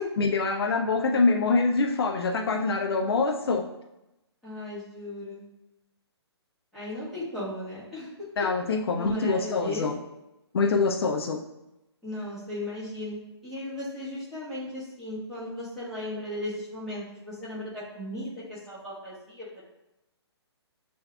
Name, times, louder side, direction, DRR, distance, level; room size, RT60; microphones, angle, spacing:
voice 1, 0.2-3.7 8.4-10.0 10.5-11.4, left 4 dB, 60° left, 3 dB, 0.5 m, -25 dB
voice 2, 4.4-5.4 6.7-8.1 8.9-9.9 12.0-19.6, left 1 dB, ahead, -11 dB, 1.4 m, -36 dB
7.7 x 2.6 x 2.3 m, 0.92 s
hypercardioid pair, 150°, 14 cm